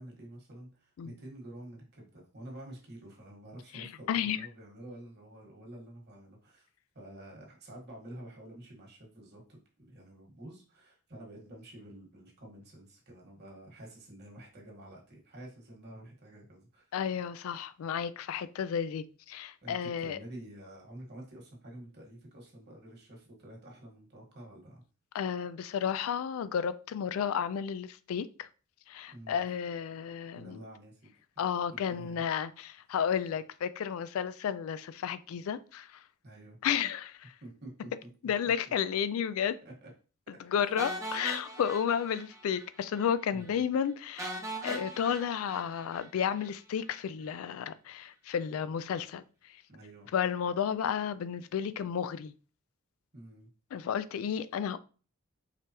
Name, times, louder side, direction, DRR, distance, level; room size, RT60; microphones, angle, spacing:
voice 1, 0.0-6.7 6.9-16.9 19.6-24.8 29.1-29.4 30.3-31.1 31.7-32.2 36.2-36.6 37.4-37.9 39.6-39.9 40.5-40.7 43.3-43.6 47.3-47.4 49.7-50.1 53.1-53.5, right 1 dB, 50° right, 1.5 m, -49 dB
voice 2, 3.7-4.5 16.9-20.2 25.1-28.5 28.9-30.6 31.4-36.0 36.6-37.3 38.2-39.6 40.5-44.4 44.6-49.2 50.1-52.3 53.7-54.8, left 8 dB, 75° left, 0.3 m, -32 dB
sound 1, 40.8-42.7 42.9-43.1 43.4-43.5 44.2-46.5, right 1 dB, 15° right, 0.7 m, -40 dB
4.7 x 3.4 x 2.9 m
head